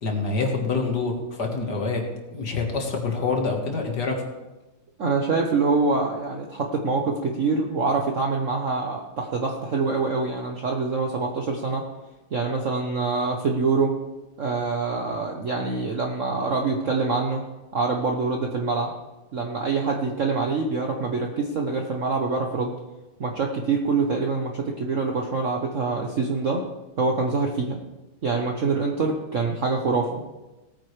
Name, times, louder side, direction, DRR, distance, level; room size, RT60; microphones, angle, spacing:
voice 1, 0.0-2.0 2.3-4.2, left 4 dB, 50° left, 2 dB, 2.1 m, -26 dB
voice 2, 5.0-11.9 12.3-13.9 14.4-17.4 17.7-18.9 19.3-22.7 23.2-26.6 27.0-27.8 28.2-30.3, right 4 dB, 55° right, 2 dB, 0.9 m, -25 dB
18.0 x 9.1 x 3.2 m, 1.1 s
omnidirectional pair, 2.4 m